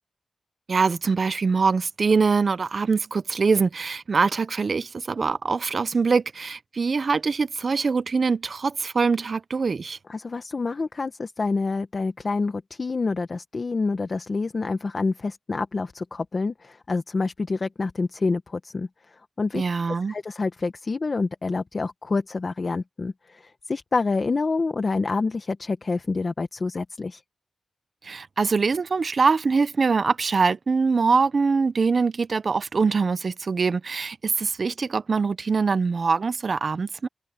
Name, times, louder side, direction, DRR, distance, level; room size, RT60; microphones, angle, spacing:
voice 1, 0.7-10.0 19.5-20.1 28.0-37.1, right 4 dB, 55° right, 0.6 m, -23 dB
voice 2, 10.1-19.6 20.1-27.2, left 3 dB, 45° left, 1.2 m, -27 dB
wide cardioid pair, 95°, 0 cm